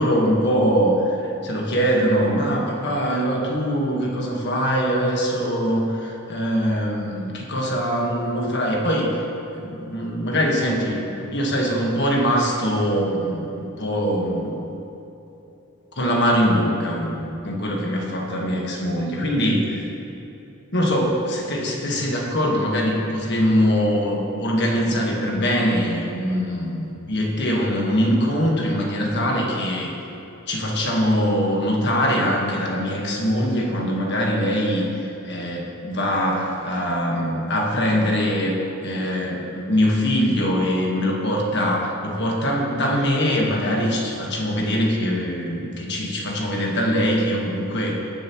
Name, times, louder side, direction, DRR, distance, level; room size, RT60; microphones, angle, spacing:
voice 1, 0.0-9.1 9.5-14.6 16.0-19.9 20.7-29.9 30.5-34.9 35.2-38.5 38.8-48.0, equal, 50° left, -1 dB, 1.5 m, -22 dB
19.0 x 7.0 x 3.1 m, 3.0 s
head